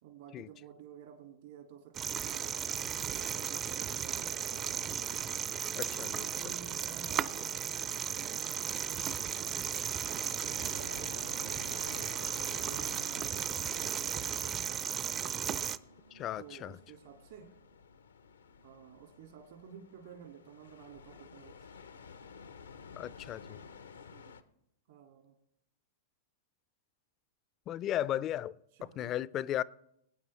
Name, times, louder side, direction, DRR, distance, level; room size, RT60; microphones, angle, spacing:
voice 1, 0.0-2.5 3.0-5.3 6.1-9.6 10.2-11.7 12.0-15.1 16.4-17.5 18.6-21.7 24.1-24.4 24.9-25.4 28.7-29.1, right 8 dB, 65° right, 1.9 m, -53 dB
sound 1, 1.9-15.8, right 8 dB, 30° right, 0.5 m, -35 dB
sound 2, 4.5-24.4, left 6 dB, 80° left, 0.7 m, -53 dB
voice 2, 5.7-6.3 16.1-16.7 23.0-23.6 27.7-28.5 29.0-29.6, left 12 dB, 35° left, 0.4 m, -35 dB
sound 3, 6.3-19.5, right 4 dB, 85° right, 4.0 m, -64 dB
21.0 x 9.1 x 3.2 m
hypercardioid pair, 105°, 0 cm